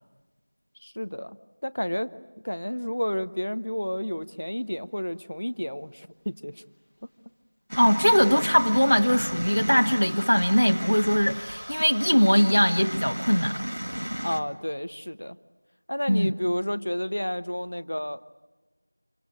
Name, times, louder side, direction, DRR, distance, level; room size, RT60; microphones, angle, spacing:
voice 1, 0.8-1.4 1.6-2.2 2.4-6.6 7.0-7.1 14.2-15.4 15.9-18.2, equal, 35° left, 13 dB, 0.8 m, -31 dB
sound 1, 7.7-14.4, equal, 40° right, 1.8 m, -34 dB
voice 2, 7.8-13.6 16.1-16.3, equal, 50° left, 6 dB, 1.4 m, -21 dB
27.5 x 25.0 x 8.4 m, 1.2 s
figure-of-eight pair, 180°, 0 cm